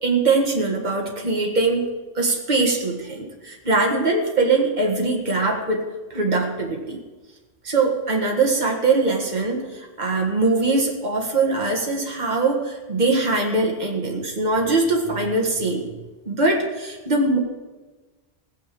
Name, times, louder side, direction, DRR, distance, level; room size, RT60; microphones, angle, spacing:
voice 1, 0.0-5.8 6.1-7.0 7.6-15.8 16.3-17.4, right 3 dB, 45° right, -1 dB, 2.0 m, -22 dB
17.0 x 6.9 x 7.8 m, 1.2 s
omnidirectional pair, 1.1 m